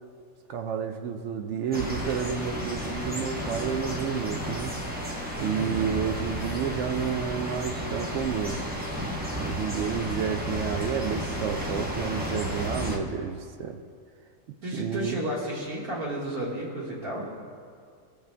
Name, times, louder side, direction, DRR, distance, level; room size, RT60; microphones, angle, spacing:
voice 1, 0.5-4.7 5.4-8.6 9.4-13.8 14.7-15.2 17.2-17.3, right 7 dB, 65° right, 6 dB, 0.8 m, -30 dB
sound 1, 1.7-13.0, equal, 10° right, 0.8 m, -33 dB
voice 2, 5.3-5.8 14.6-17.2, right 1 dB, 85° right, -4 dB, 2.1 m, -32 dB
22.0 x 7.4 x 2.2 m, 2.2 s
omnidirectional pair, 1.5 m